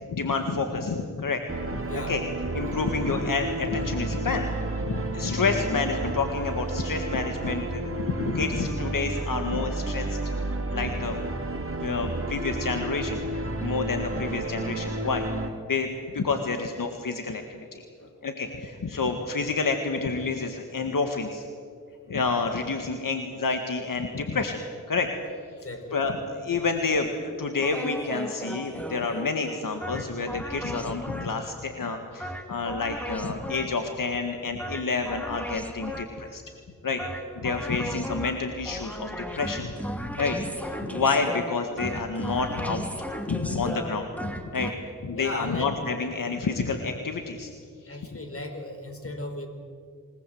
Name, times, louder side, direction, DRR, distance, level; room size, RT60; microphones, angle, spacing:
voice 1, 0.1-1.4 1.7-1.8 2.1-2.2 2.5-4.5 4.8-10.2 10.7-11.2 11.8-15.3 15.7-15.9 16.1-17.8 18.2-21.4 22.1-24.6 24.9-25.1 25.9-26.2 26.4-36.4 36.8-37.0 37.4-39.7 40.2-42.8 43.3-47.5, left 4 dB, 75° left, 5 dB, 1.8 m, -29 dB
sound 1, 1.5-15.5, right 2 dB, 40° right, 3.0 m, -31 dB
voice 2, 1.9-2.2 18.0-18.1 25.5-26.1 37.6-37.7 45.1-45.8 47.9-49.5, left 1 dB, 40° left, 5 dB, 4.7 m, -37 dB
sound 2, 27.6-31.5 32.2-33.9 34.6-36.3 37.0-44.7, equal, 5° left, 2.3 m, -36 dB
28.0 x 19.5 x 7.9 m, 2.2 s
cardioid pair, 65°, 33 cm